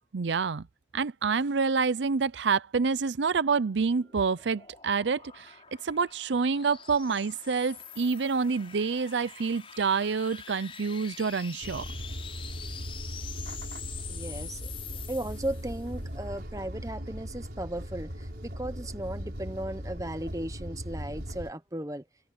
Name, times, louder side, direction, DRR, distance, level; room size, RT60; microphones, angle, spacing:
voice 1, 0.1-0.7 0.9-5.6 5.8-11.8, right 5 dB, 80° right, 0.5 m, -27 dB
sound 1, 3.3-16.0, left 8 dB, 30° left, 7.2 m, -45 dB
sound 2, 11.6-21.5, equal, 60° right, 4.4 m, -39 dB
voice 2, 14.1-14.7 15.1-22.0, right 1 dB, 20° right, 1.1 m, -36 dB
head